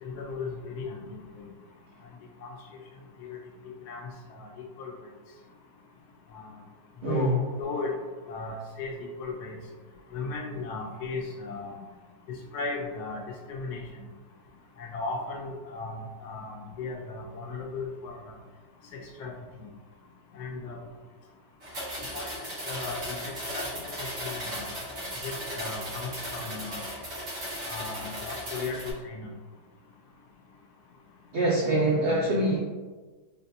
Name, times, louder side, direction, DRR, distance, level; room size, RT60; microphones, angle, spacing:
voice 1, 0.0-1.0 1.4-1.5 2.4-2.5 3.2-3.4 3.9-4.0 4.4-4.5 4.8-4.9 6.3-6.4 7.1-7.3 7.6-7.9 8.3-8.9 9.2-9.6 10.1-11.8 12.5-13.8 14.8-18.2 18.9-19.3 20.4-20.8 22.1-24.7 25.2-26.8 27.6-29.3, left 3 dB, 75° left, 0 dB, 1.2 m, -36 dB
voice 2, 7.0-7.3 31.3-32.6, right 2 dB, 85° right, -5 dB, 0.5 m, -24 dB
sound 1, 21.6-28.9, equal, 70° right, 1.8 m, -36 dB
4.0 x 2.2 x 2.6 m, 1.3 s
omnidirectional pair, 1.7 m